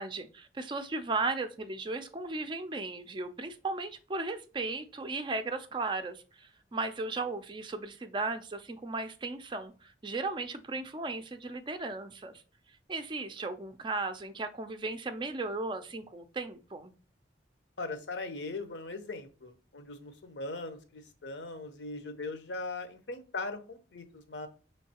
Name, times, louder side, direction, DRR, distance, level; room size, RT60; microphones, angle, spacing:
voice 1, 0.0-12.4 12.9-16.9, right 3 dB, 25° right, 8 dB, 0.4 m, -36 dB
voice 2, 17.8-24.5, left 3 dB, 70° left, 8 dB, 0.8 m, -40 dB
5.4 x 3.2 x 2.8 m, 0.36 s
head